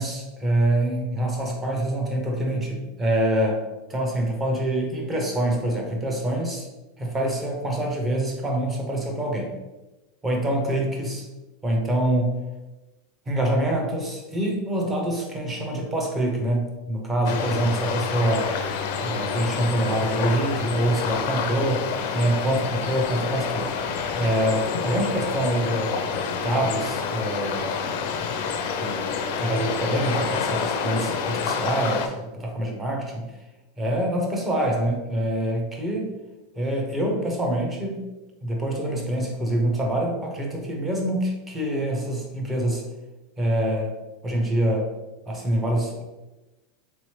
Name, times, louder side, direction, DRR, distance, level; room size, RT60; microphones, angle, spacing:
voice 1, 0.0-3.6 3.9-6.7 7.0-9.5 10.2-11.3 11.6-12.4 13.3-18.5 19.0-21.9 22.1-23.7 24.1-26.1 26.4-27.7 28.7-29.0 29.4-33.3 33.8-36.1 36.6-38.0 38.4-42.8 43.4-43.9 44.2-44.9 45.3-46.0, right 1 dB, 10° right, 1 dB, 0.6 m, -25 dB
sound 1, 17.3-32.1, left 6 dB, 55° left, 0.4 m, -28 dB
3.6 x 3.0 x 3.1 m, 1.1 s
supercardioid pair, 170°, 0 cm